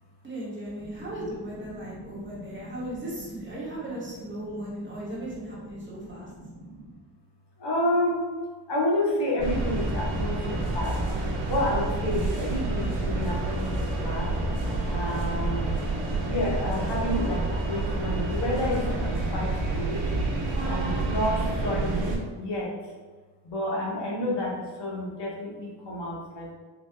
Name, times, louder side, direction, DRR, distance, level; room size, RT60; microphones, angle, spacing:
voice 1, 0.2-6.3, right 1 dB, 25° right, -7 dB, 1.1 m, -37 dB
voice 2, 1.4-3.0 5.1-5.2 5.7-6.9 7.6-8.2 8.7-11.0 11.5-13.7 14.0-14.3 14.9-15.7 16.2-20.0 20.6-22.7 23.4-26.5, left 1 dB, 65° left, -4 dB, 1.0 m, -30 dB
sound 1, 9.4-22.2, right 2 dB, 70° right, 0.8 m, -28 dB
3.9 x 2.3 x 3.2 m, 1.4 s
wide cardioid pair, 165°, 44 cm